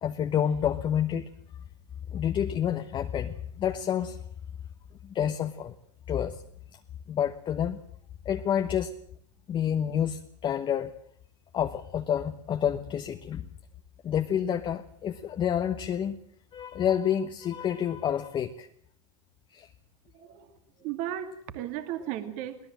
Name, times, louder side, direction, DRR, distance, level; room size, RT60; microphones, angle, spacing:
voice 1, 0.0-1.3 2.1-4.2 5.0-5.7 6.1-6.4 7.1-7.8 8.2-8.9 9.5-10.9 11.5-13.4 14.0-16.2 16.5-18.7 19.5-19.7, left 9 dB, 30° left, 6 dB, 1.2 m, -28 dB
voice 2, 20.8-22.6, right 11 dB, 50° right, 9 dB, 2.3 m, -35 dB
22.5 x 17.5 x 7.6 m, 0.64 s
hypercardioid pair, 105°, 16 cm